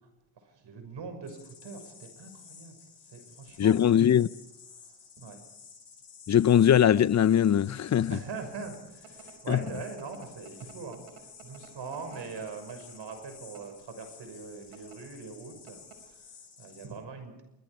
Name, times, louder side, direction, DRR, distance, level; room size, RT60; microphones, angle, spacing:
voice 1, 0.4-2.8 3.0-4.2 4.7-5.4 8.1-17.4, right 4 dB, 60° right, 6.2 m, -42 dB
sound 1, 1.2-16.9, left 6 dB, 55° left, 6.2 m, -53 dB
voice 2, 3.6-4.3 6.3-8.2 9.5-9.6, left 9 dB, 35° left, 0.6 m, -21 dB
sound 2, 8.4-13.9 14.6-15.0 15.3-15.4 15.7-16.2, right 8 dB, 80° right, 4.8 m, -52 dB
29.0 x 21.0 x 5.1 m
supercardioid pair, 60°, 49 cm